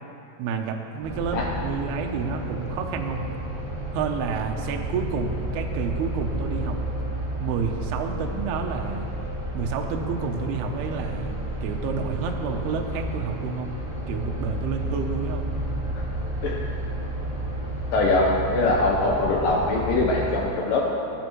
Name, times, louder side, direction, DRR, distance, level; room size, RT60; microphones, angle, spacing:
voice 1, 0.4-3.2 3.9-6.8 7.4-9.1 9.5-13.8 14.1-15.5, right 5 dB, 75° right, 2 dB, 2.5 m, -30 dB
sound 1, 1.0-20.4, right 1 dB, 20° right, 1.3 m, -31 dB
voice 2, 17.9-20.9, left 2 dB, 80° left, -2 dB, 2.0 m, -22 dB
19.5 x 10.0 x 3.1 m, 2.7 s
omnidirectional pair, 5.2 m